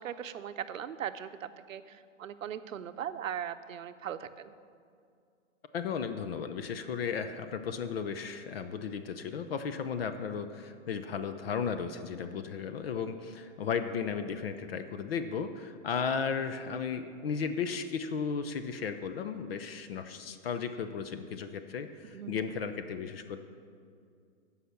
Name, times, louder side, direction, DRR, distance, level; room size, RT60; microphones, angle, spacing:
voice 1, 0.0-1.3 1.7-4.5 22.1-22.4, right 9 dB, 90° right, 11 dB, 0.7 m, -39 dB
voice 2, 5.7-23.4, left 6 dB, 50° left, 9 dB, 0.6 m, -35 dB
14.5 x 5.7 x 5.8 m, 2.3 s
hypercardioid pair, 160°, 39 cm